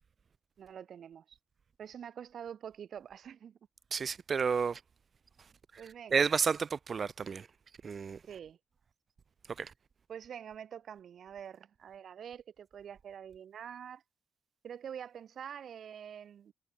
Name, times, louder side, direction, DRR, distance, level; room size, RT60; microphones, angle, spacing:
voice 1, 0.6-1.4 1.8-3.6 5.8-6.2 8.3-8.6 10.1-14.0 14.6-16.5, right 8 dB, 60° right, 4.8 m, -46 dB
voice 2, 3.9-4.8 6.1-7.5 7.8-8.2 9.6-9.7, right 6 dB, 40° right, 1.3 m, -31 dB
cardioid pair, 90°, 0 cm